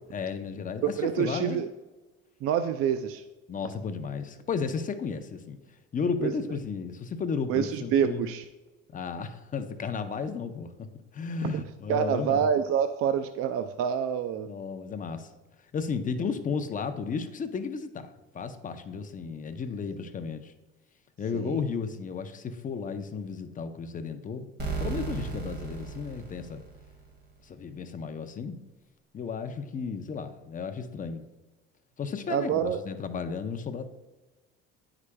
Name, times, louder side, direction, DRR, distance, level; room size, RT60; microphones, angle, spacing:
voice 1, 0.1-1.6 3.5-5.6 5.9-8.2 8.9-10.9 11.1-12.5 14.4-15.3 15.7-20.5 21.2-24.5 24.8-26.6 27.4-28.6 29.1-31.3 32.0-33.8, left 5 dB, 30° left, 9 dB, 0.6 m, -33 dB
voice 2, 0.8-1.7 2.4-3.2 6.2-6.3 7.5-8.5 11.4-11.6 11.9-14.5 21.3-21.6 32.3-32.8, right 8 dB, 50° right, 10 dB, 0.4 m, -27 dB
sound 1, 24.6-27.3, right 4 dB, 35° right, 2.0 m, -35 dB
9.5 x 4.9 x 2.2 m, 1.2 s
supercardioid pair, 95°, 29 cm